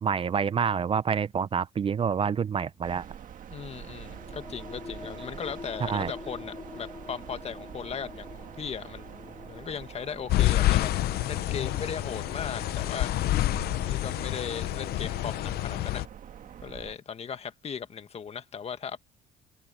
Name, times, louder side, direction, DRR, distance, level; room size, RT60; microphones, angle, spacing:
voice 1, 0.0-3.1 5.8-6.1, right 7 dB, 35° right, 0.6 m, -27 dB
sound 1, 2.8-17.0, right 9 dB, 50° right, 1.7 m, -45 dB
voice 2, 3.5-13.1 13.9-16.0 16.6-19.0, left 7 dB, 40° left, 1.5 m, -38 dB
sound 2, 3.6-14.8, left 4 dB, 15° left, 1.5 m, -47 dB
sound 3, 10.3-16.1, left 15 dB, 65° left, 0.6 m, -28 dB
cardioid pair, 110°, 17 cm